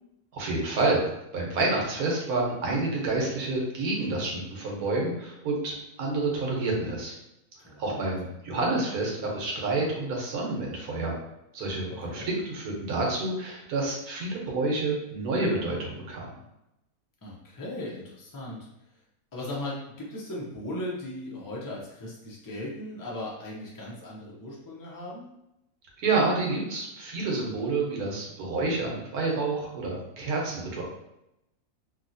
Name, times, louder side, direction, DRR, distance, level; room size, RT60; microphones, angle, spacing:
voice 1, 0.3-1.0 1.3-7.1 7.8-11.1 11.5-16.3 26.0-30.8, right 3 dB, 80° right, -1 dB, 1.3 m, -28 dB
voice 2, 7.6-8.0 12.0-12.3 17.2-18.6 19.3-25.3, left 1 dB, 30° left, -4 dB, 0.4 m, -37 dB
2.9 x 2.7 x 2.6 m, 0.87 s
omnidirectional pair, 1.6 m